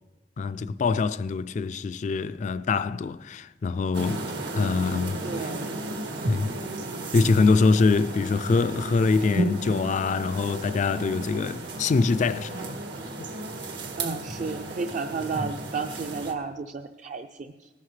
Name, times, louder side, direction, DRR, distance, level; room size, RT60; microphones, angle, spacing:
voice 1, 0.4-4.3 4.5-5.5 6.3-6.5 7.1-12.8 13.2-13.3, left 4 dB, 45° left, 0.3 m, -24 dB
sound 1, 3.9-16.3, right 2 dB, 80° right, 1.7 m, -34 dB
voice 2, 5.2-5.8 14.0-17.7, right 4 dB, 45° right, 0.5 m, -33 dB
19.0 x 11.5 x 3.2 m
head